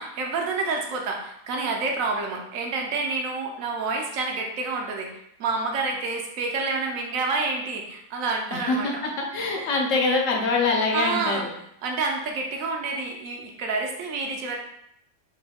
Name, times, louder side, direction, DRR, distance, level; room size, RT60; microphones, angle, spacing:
voice 1, 0.0-8.9 9.6-9.7 10.9-11.4 11.8-14.6, right 3 dB, 70° right, 1 dB, 1.0 m, -28 dB
voice 2, 8.5-11.4, left 3 dB, 70° left, 0 dB, 0.9 m, -24 dB
3.8 x 2.2 x 3.3 m, 0.74 s
omnidirectional pair, 1.5 m